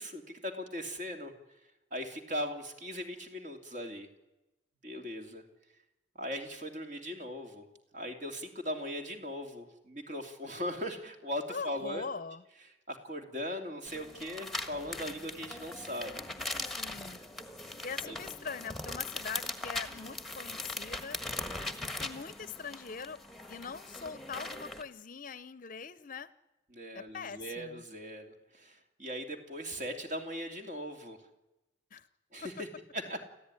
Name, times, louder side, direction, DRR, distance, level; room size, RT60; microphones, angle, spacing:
voice 1, 0.0-1.3 1.9-4.1 4.8-5.4 6.2-7.6 7.9-12.0 12.9-16.3 18.0-18.2 26.7-31.2 32.3-32.7 32.9-33.2, equal, 40° right, 5 dB, 2.7 m, -39 dB
voice 2, 11.5-12.4 16.6-17.2 17.8-21.2 21.8-23.2 23.5-26.3 26.9-27.8 31.9-32.1 32.4-32.5, left 5 dB, 45° left, 16 dB, 0.8 m, -42 dB
sound 1, 13.9-24.8, left 2 dB, ahead, 1.5 m, -40 dB
30.0 x 14.5 x 9.8 m, 1.0 s
head